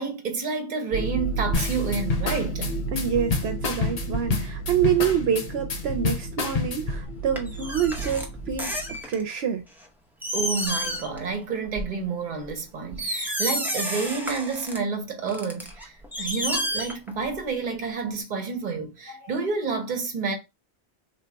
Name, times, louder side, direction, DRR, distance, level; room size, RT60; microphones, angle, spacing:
voice 1, 0.0-2.8 10.3-20.4, right 4 dB, 50° right, 0.9 m, -29 dB
sound 1, 0.9-9.0, right 2 dB, 85° left, 1.3 m, -33 dB
sound 2, 1.5-7.0, left 4 dB, 45° left, 0.6 m, -28 dB
voice 2, 2.9-8.7 9.0-9.6, right 8 dB, 75° right, 0.8 m, -26 dB
sound 3, 7.4-9.3 9.8-9.9 10.2-11.2 11.6-11.9 12.4-12.5 12.9-14.8 15.3-17.4 17.6-17.7, equal, ahead, 0.5 m, -30 dB
3.4 x 2.2 x 3.8 m
omnidirectional pair, 1.1 m